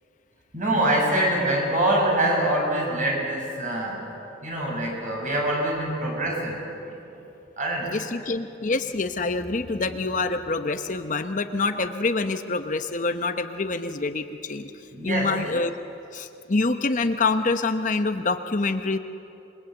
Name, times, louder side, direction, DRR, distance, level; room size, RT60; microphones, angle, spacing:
voice 1, 0.5-4.1 4.4-7.0 7.6-8.0 14.9-15.3, right 1 dB, 45° right, -1 dB, 6.6 m, -25 dB
voice 2, 7.8-14.7 15.0-15.7 16.1-19.0, left 3 dB, 45° left, 8 dB, 0.8 m, -26 dB
27.0 x 21.5 x 8.0 m, 2.9 s
head